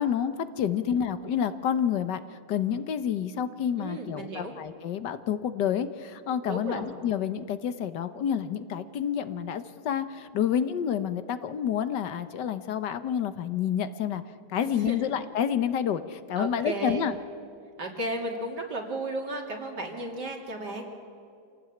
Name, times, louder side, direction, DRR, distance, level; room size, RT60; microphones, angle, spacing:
voice 1, 0.0-14.2 14.5-17.1, left 8 dB, 85° left, 11 dB, 1.7 m, -29 dB
voice 2, 3.8-4.5 6.5-6.9 14.6-15.0 16.4-17.1 17.8-20.8, right 1 dB, 75° right, 1 dB, 3.7 m, -34 dB
27.0 x 17.5 x 8.6 m, 2.5 s
omnidirectional pair, 1.8 m